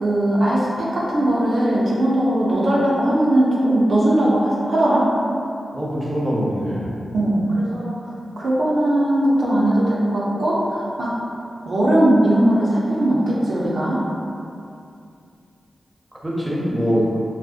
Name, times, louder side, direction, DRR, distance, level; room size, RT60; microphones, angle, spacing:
voice 1, 0.0-5.1 7.1-7.9 8.4-11.1 11.7-14.0, right 1 dB, 70° right, -7 dB, 0.4 m, -19 dB
voice 2, 5.7-6.9 16.2-17.1, equal, 20° right, -6 dB, 0.7 m, -23 dB
2.6 x 2.0 x 2.4 m, 2.5 s
cardioid pair, 45°, 0 cm